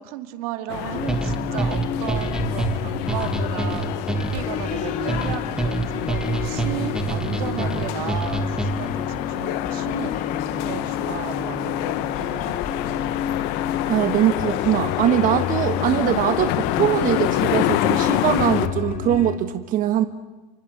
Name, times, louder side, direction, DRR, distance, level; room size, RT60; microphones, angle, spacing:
voice 1, 0.0-10.2 10.6-12.7, right 13 dB, 75° right, 8 dB, 2.3 m, -35 dB
sound 1, 0.7-18.7, left 14 dB, 65° left, 1.4 m, -27 dB
sound 2, 0.9-19.4, left 8 dB, 45° left, 2.5 m, -31 dB
sound 3, 1.1-9.0, right 3 dB, 5° right, 2.1 m, -27 dB
voice 2, 13.8-20.0, right 11 dB, 45° right, 9 dB, 1.4 m, -22 dB
29.5 x 24.5 x 6.7 m, 1.2 s
supercardioid pair, 110°, 19 cm